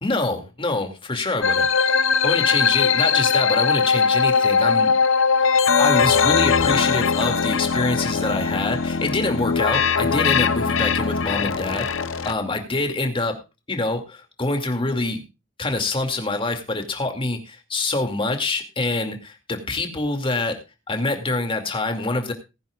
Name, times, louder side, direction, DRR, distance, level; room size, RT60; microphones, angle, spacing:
voice 1, 0.0-4.9 5.4-5.5 5.8-11.9 12.2-13.4 13.7-15.2 15.6-20.6 20.9-22.3, left 2 dB, 25° left, 5 dB, 2.3 m, -26 dB
sound 1, 1.4-12.3, left 5 dB, 70° left, 0.8 m, -20 dB
19.5 x 10.5 x 2.4 m, 0.28 s
head